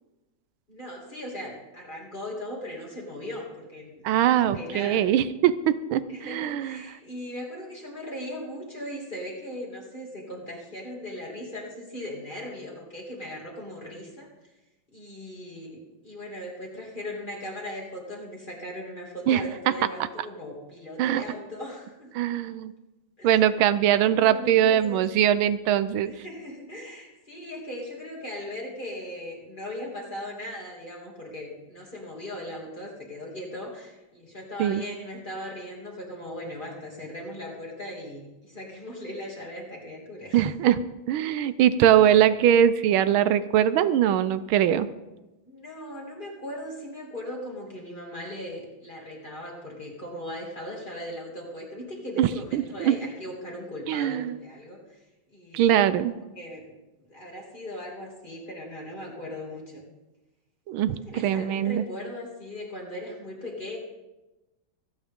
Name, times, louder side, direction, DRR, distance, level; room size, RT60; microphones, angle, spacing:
voice 1, 0.7-5.0 6.1-14.3 14.9-22.1 23.2-23.3 24.0-25.0 26.0-40.4 45.5-54.8 55.3-55.8 56.4-56.8 57.1-59.8 61.1-63.8, left 1 dB, 25° left, -2 dB, 2.7 m, -38 dB
voice 2, 4.0-6.8 19.3-19.4 21.0-21.2 22.1-22.7 23.2-26.1 34.6-34.8 40.3-40.8 41.1-44.9 52.2-53.0 53.9-54.3 55.5-56.1 60.7-61.8, right 10 dB, 85° right, 14 dB, 1.5 m, -22 dB
25.0 x 8.9 x 3.6 m, 1.0 s
omnidirectional pair, 2.2 m